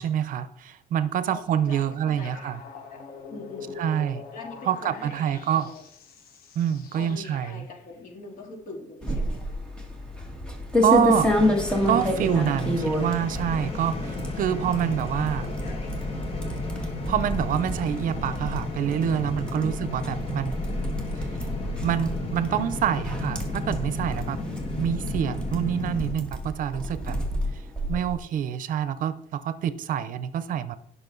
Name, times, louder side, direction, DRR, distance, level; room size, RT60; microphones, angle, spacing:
voice 1, 0.0-2.6 3.8-4.2 4.7-5.7 6.6-7.6 10.8-11.4 11.8-15.5 17.1-20.6 21.2-21.3 21.8-24.4 24.8-27.2 27.9-30.8, right 9 dB, 65° right, 14 dB, 0.7 m, -26 dB
voice 2, 1.3-3.0 3.3-3.9 4.3-5.8 6.9-9.6 13.5-13.6 15.4-15.9 19.6-19.7 26.7-27.1, left 3 dB, 60° left, 1 dB, 3.0 m, -43 dB
sound 1, 2.2-7.9, left 4 dB, 80° left, 2.1 m, -44 dB
sound 2, 9.0-28.1, left 1 dB, 5° left, 1.9 m, -29 dB
sound 3, 11.1-26.1, left 2 dB, 40° left, 2.3 m, -34 dB
18.0 x 6.2 x 3.9 m, 0.71 s
cardioid pair, 170°, 15 cm